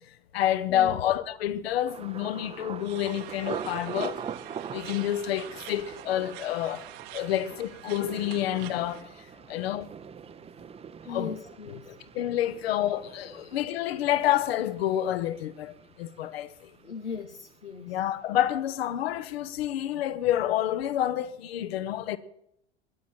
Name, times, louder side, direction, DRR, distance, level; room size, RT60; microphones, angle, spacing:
voice 1, 0.3-4.2 4.7-6.8 7.1-9.1 9.5-9.9 11.1-11.3 11.9-16.5 17.9-22.2, left 12 dB, 60° left, 1.0 m, -28 dB
Thunder, 1.9-17.6 17.9-18.5 18.9-19.2, right 7 dB, 20° right, 0.7 m, -43 dB
sound 1, 2.8-9.0, right 15 dB, 50° right, 1.1 m, -46 dB
voice 2, 11.1-12.0 13.3-13.5 16.8-18.0, left 6 dB, 85° left, 0.8 m, -39 dB
22.0 x 9.5 x 4.4 m
figure-of-eight pair, 80°, 34 cm